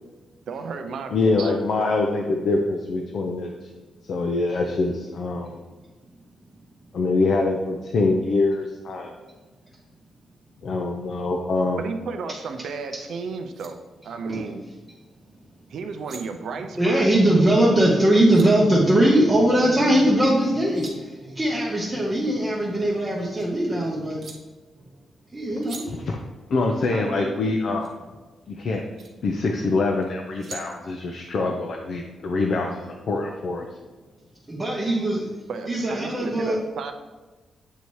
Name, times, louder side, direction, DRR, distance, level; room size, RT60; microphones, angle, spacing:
voice 1, 0.5-1.9 2.2-2.3 11.8-14.6 15.7-17.0 26.9-27.4 35.5-36.9, right 4 dB, 65° right, 6 dB, 0.5 m, -33 dB
voice 2, 1.1-3.5 4.1-5.6 6.9-9.1 10.6-11.8 26.1-26.2 26.5-27.9 28.5-28.9 29.2-33.7, left 3 dB, 50° left, 1 dB, 0.5 m, -24 dB
sound 1, 13.4-13.7 15.8-16.2 17.9-18.5 20.4-21.0 22.3-23.5 24.2-24.4 25.6-25.8 27.8-27.9 28.7-29.1 30.0-30.7, right 4 dB, 50° right, 0.9 m, -43 dB
voice 3, 16.8-24.2 25.4-25.9 34.5-35.3 35.7-36.6, right 1 dB, 15° right, -4 dB, 0.7 m, -20 dB
7.9 x 2.8 x 4.6 m, 1.3 s
wide cardioid pair, 160°, 0 cm